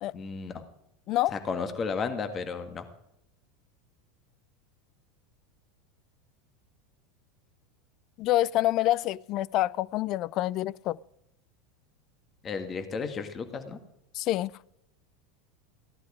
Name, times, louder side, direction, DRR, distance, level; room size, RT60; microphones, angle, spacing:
voice 1, 0.1-0.6 1.3-2.8 12.4-13.8, left 5 dB, 30° left, 1.9 m, -33 dB
voice 2, 8.2-11.0 14.1-14.5, left 15 dB, 50° left, 0.4 m, -27 dB
16.0 x 11.5 x 5.0 m
hypercardioid pair, 85°, 0 cm